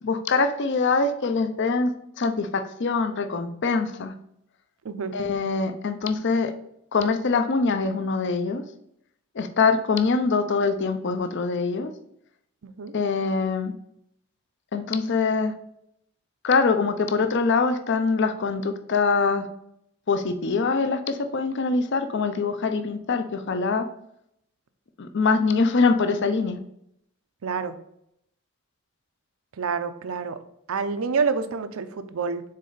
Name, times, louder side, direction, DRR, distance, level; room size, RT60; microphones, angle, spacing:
voice 1, 0.0-1.9 2.2-4.1 5.1-6.5 6.9-8.6 9.3-11.9 12.9-13.7 14.7-15.5 16.4-19.5 20.1-23.9 25.0-26.6, left 4 dB, 55° left, 8 dB, 0.5 m, -23 dB
voice 2, 27.4-27.8 29.6-30.4 30.7-32.4, right 5 dB, 75° right, 11 dB, 0.5 m, -27 dB
6.5 x 4.2 x 3.9 m, 0.75 s
head